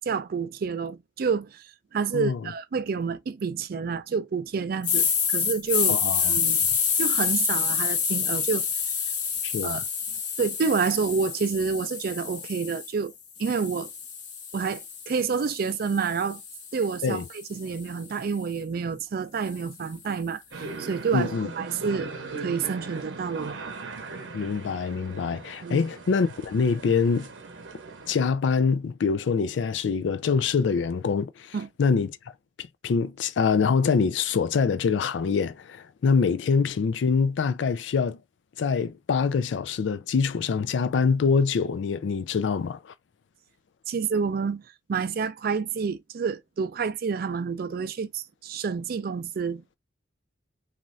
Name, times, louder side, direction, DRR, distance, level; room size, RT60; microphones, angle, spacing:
voice 1, 0.1-1.6 1.9-6.7 7.0-8.7 9.6-9.8 10.4-13.1 13.4-13.9 14.5-16.4 16.7-23.6 25.6-25.8 31.5-31.7 43.9-44.6 44.9-49.8, right 5 dB, 55° right, 0.4 m, -29 dB
sound 1, 4.8-12.9 13.4-17.6, left 7 dB, 45° left, 0.8 m, -28 dB
voice 2, 5.9-6.3 9.4-9.9 17.0-17.2 21.1-21.5 24.3-27.3 28.1-32.2 32.6-38.2 38.6-42.9, left 5 dB, 85° left, 0.4 m, -25 dB
sound 2, 20.5-28.1, right 3 dB, 80° right, 0.7 m, -39 dB
3.0 x 2.5 x 2.6 m
head